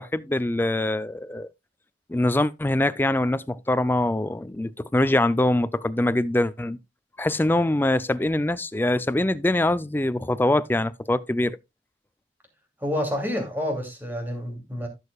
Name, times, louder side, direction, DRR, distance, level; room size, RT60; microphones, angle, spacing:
voice 1, 0.0-1.5 2.1-6.8 7.2-11.6, left 1 dB, 10° left, 0.4 m, -23 dB
voice 2, 12.8-14.9, left 1 dB, 10° right, 2.7 m, -28 dB
15.5 x 6.5 x 2.3 m
head